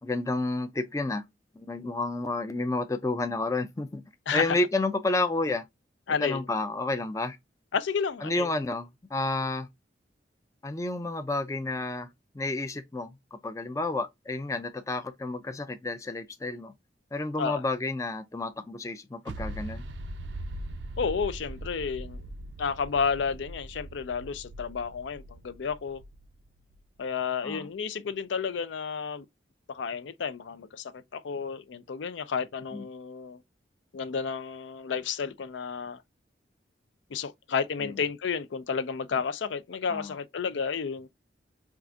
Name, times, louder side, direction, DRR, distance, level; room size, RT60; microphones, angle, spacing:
voice 1, 0.0-1.3 1.6-4.0 4.3-5.7 6.2-7.4 8.2-9.7 10.6-12.1 12.3-16.7 17.1-19.8 27.4-27.7 32.7-32.9 37.8-38.0 39.9-40.2, left 2 dB, 15° left, 0.4 m, -30 dB
voice 2, 4.3-4.6 6.1-6.5 7.7-8.5 17.4-17.6 21.0-22.2 22.6-26.0 27.0-29.3 29.7-33.4 33.9-36.0 37.1-41.1, left 6 dB, 80° left, 0.4 m, -31 dB
sound 1, 19.3-26.8, right 1 dB, 80° right, 0.5 m, -40 dB
4.6 x 2.4 x 2.4 m
head